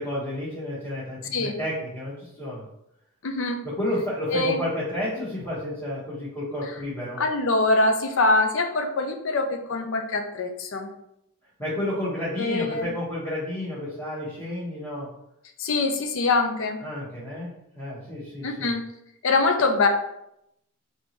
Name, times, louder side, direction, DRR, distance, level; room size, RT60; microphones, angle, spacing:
voice 1, 0.0-2.6 3.6-7.2 11.6-15.1 16.8-18.7, left 1 dB, 15° left, -12 dB, 1.4 m, -31 dB
voice 2, 3.2-3.6 4.3-4.6 7.2-10.9 12.4-12.9 15.6-16.8 18.4-18.8 19.2-19.9, left 3 dB, 60° left, 5 dB, 0.5 m, -23 dB
3.9 x 3.7 x 3.1 m, 0.80 s
head